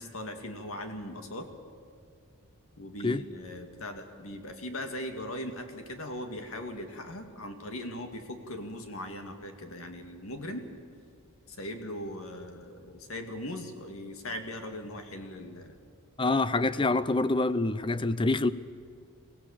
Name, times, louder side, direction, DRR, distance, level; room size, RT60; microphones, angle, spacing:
voice 1, 0.0-1.5 2.8-10.6 11.5-15.8 16.9-17.0, left 1 dB, 70° left, 2.2 m, -39 dB
voice 2, 16.2-18.5, left 2 dB, 20° left, 0.6 m, -26 dB
24.0 x 16.5 x 7.3 m
head